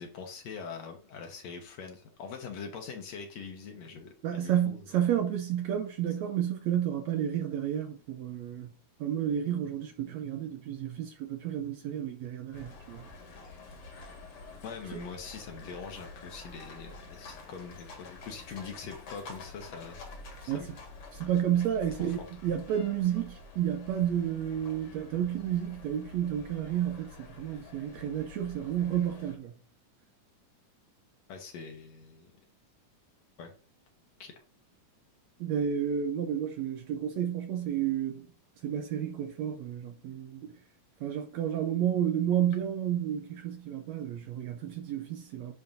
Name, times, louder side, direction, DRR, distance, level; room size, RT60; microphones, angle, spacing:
voice 1, 0.0-4.9 14.6-20.0 20.4-20.7 21.8-22.3 31.3-32.4 33.4-33.5 34.2-34.3, left 5 dB, 65° left, 2.0 m, -43 dB
voice 2, 4.2-8.7 9.0-13.1 20.5-20.6 21.1-29.5 35.4-38.3 38.6-40.5 41.0-45.5, right 10 dB, 75° right, 1.7 m, -31 dB
sound 1, 12.5-29.3, left 3 dB, 50° left, 2.2 m, -48 dB
10.5 x 4.2 x 2.6 m
omnidirectional pair, 3.7 m